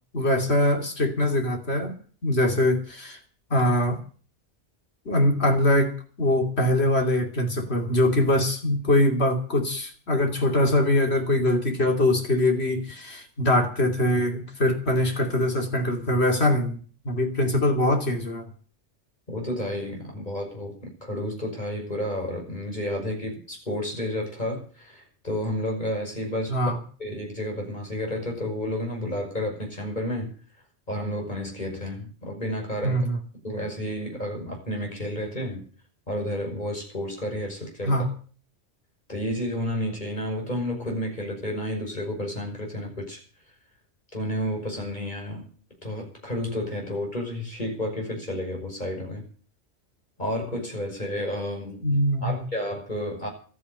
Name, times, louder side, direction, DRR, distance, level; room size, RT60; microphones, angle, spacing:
voice 1, 0.1-1.9 2.2-3.2 3.5-4.0 5.0-16.8 17.0-18.5 26.5-26.8 32.8-33.2 37.8-38.1 51.8-52.4, left 1 dB, 60° left, 3 dB, 3.2 m, -23 dB
voice 2, 19.3-26.7 27.0-30.3 30.9-33.1 33.4-35.6 36.1-38.0 39.1-43.2 44.1-45.5 45.8-49.2 50.2-53.3, left 1 dB, 40° left, 1 dB, 6.1 m, -31 dB
13.0 x 9.4 x 9.9 m, 0.43 s
omnidirectional pair, 1.2 m